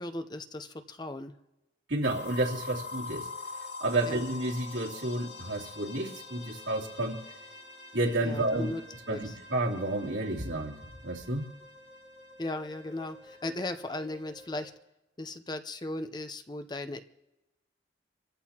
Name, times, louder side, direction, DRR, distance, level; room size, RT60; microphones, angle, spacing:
voice 1, 0.0-1.3 4.1-4.2 8.2-8.8 9.1-9.3 12.4-14.7 15.2-17.1, left 2 dB, 25° left, 8 dB, 0.7 m, -37 dB
voice 2, 1.9-3.3 3.8-7.2 7.9-8.7 9.1-10.8 11.0-11.5, right 1 dB, 85° right, -3 dB, 3.1 m, -30 dB
sound 1, 2.0-14.7, left 3 dB, 70° left, 5.7 m, -45 dB
27.5 x 14.5 x 2.9 m, 0.98 s
head